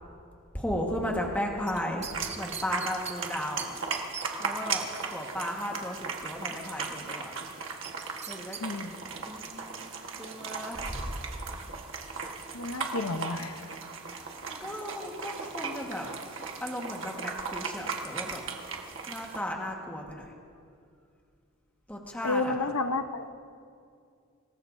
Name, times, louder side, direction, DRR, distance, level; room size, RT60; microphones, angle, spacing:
voice 1, 0.5-2.1 2.4-3.8 4.4-7.3 8.2-8.6 9.2-9.8 10.2-11.1 14.5-16.1 16.6-18.4 19.1-20.3 21.9-22.7, equal, 5° left, -1 dB, 1.4 m, -35 dB
sound 1, 1.7-3.2 3.6-3.7 3.9-4.3 7.8-8.6 9.0-9.1, right 7 dB, 30° right, 0.8 m, -39 dB
sound 2, 2.1-19.4, right 5 dB, 60° right, 1.4 m, -37 dB
voice 2, 8.6-9.0 12.5-13.7 22.2-23.3, left 3 dB, 75° left, 8 dB, 0.8 m, -31 dB
25.5 x 19.5 x 2.7 m, 2.4 s
head